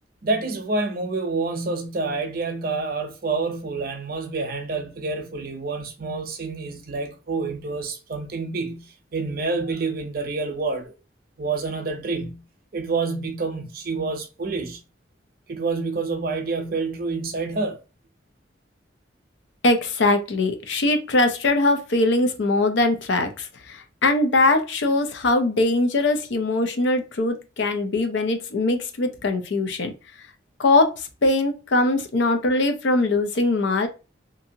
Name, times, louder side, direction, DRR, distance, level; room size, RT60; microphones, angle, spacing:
voice 1, 0.2-10.9 11.4-12.4 12.7-14.8 15.5-17.8, right 3 dB, 55° right, 0.6 m, -28 dB
voice 2, 19.6-29.9 30.6-33.9, left 2 dB, 80° left, 0.5 m, -21 dB
2.6 x 2.6 x 2.7 m
head